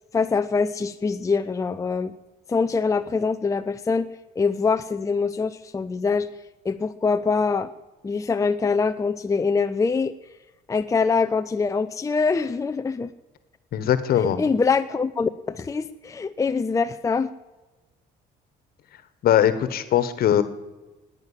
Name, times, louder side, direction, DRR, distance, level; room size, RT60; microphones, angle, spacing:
voice 1, 0.1-2.1 2.5-4.1 4.4-6.3 6.6-7.7 8.0-10.1 10.7-13.1 14.2-17.3, left 4 dB, 20° left, 9 dB, 0.6 m, -24 dB
voice 2, 13.7-14.4 19.2-20.4, left 10 dB, 65° left, 13 dB, 1.4 m, -20 dB
18.5 x 9.1 x 7.4 m, 1.1 s
cardioid pair, 110°, 17 cm